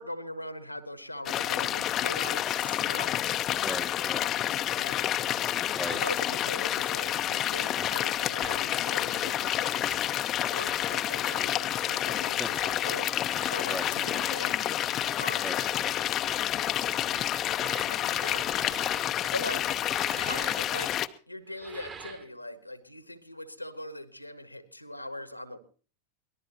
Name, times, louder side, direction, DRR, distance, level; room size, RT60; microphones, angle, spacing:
voice 1, 0.0-3.5 4.7-5.1 5.9-9.8 10.4-13.1 13.5-14.6 15.2-15.5 17.8-18.8 19.3-19.7 20.2-20.9 21.3-25.6, left 1 dB, 90° left, 12 dB, 1.5 m, -41 dB
sound 1, 1.3-21.1, left 12 dB, 30° left, 0.7 m, -29 dB
voice 2, 3.6-4.3 5.4-6.0 12.4-12.5 13.7-13.9 15.4-16.0 19.1-19.4, right 1 dB, 5° right, 11 dB, 1.1 m, -39 dB
sound 2, 7.8-7.9 8.4-8.6 9.7-10.1 10.5-10.8 11.2-11.5 12.4-12.7 13.2-13.6 14.0-14.3 15.3-15.8 16.9-19.1 19.8-20.6 21.5-22.3, right 6 dB, 30° right, 2.3 m, -45 dB
24.0 x 19.0 x 2.9 m, 0.41 s
figure-of-eight pair, 90°, 0 cm